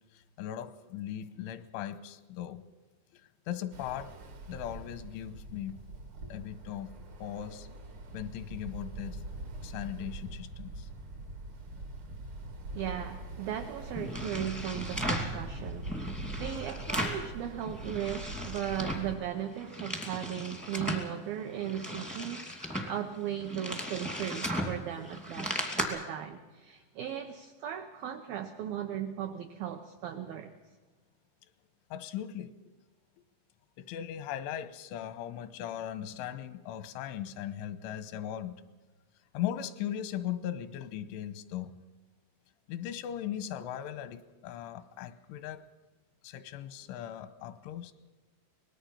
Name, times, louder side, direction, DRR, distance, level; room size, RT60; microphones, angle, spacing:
voice 1, 0.4-2.6 3.5-4.1 4.5-5.8 6.3-6.9 7.2-7.7 8.1-9.2 9.6-10.9 16.7-16.8 31.9-32.6 33.8-38.5 39.3-41.8 42.7-45.6 46.2-47.9, left 10 dB, 85° left, 13 dB, 3.3 m, -38 dB
Ocean, 3.7-19.1, right 2 dB, 60° right, 1.3 m, -43 dB
voice 2, 12.7-25.5 25.8-30.5, right 10 dB, 85° right, 6 dB, 2.0 m, -37 dB
sound 1, 14.0-15.4 15.8-17.3 17.6-19.1 19.5-21.1 21.6-25.8, equal, ahead, 0.7 m, -36 dB
25.0 x 19.5 x 5.6 m, 1.2 s
omnidirectional pair, 5.5 m